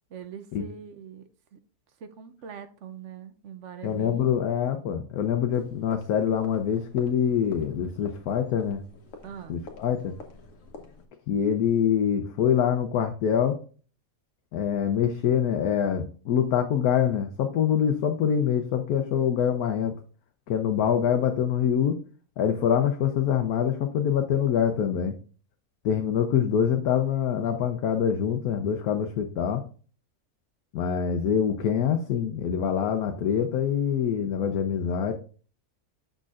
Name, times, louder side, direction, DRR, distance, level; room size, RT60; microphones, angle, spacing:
voice 1, 0.1-1.6 2.0-4.3 9.2-9.6, right 8 dB, 65° right, 0.9 m, -42 dB
voice 2, 3.8-8.8 9.5-10.1 11.3-13.6 14.5-19.9 20.5-22.0 22.4-25.2 25.8-29.6 30.7-35.1, left 8 dB, 85° left, 1.2 m, -25 dB
sound 1, 5.5-11.1, left 3 dB, 60° left, 1.4 m, -48 dB
6.6 x 6.3 x 2.4 m
omnidirectional pair, 1.6 m